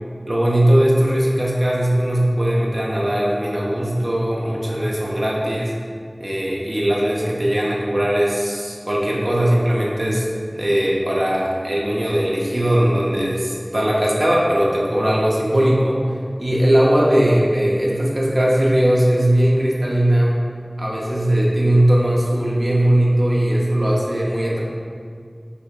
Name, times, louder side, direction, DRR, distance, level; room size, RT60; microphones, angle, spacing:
voice 1, 0.3-5.7 6.2-10.3 10.5-16.0 16.4-20.4 20.8-24.6, right 1 dB, 50° right, -4 dB, 0.5 m, -19 dB
5.0 x 3.1 x 2.4 m, 2.2 s
wide cardioid pair, 40°, 0 cm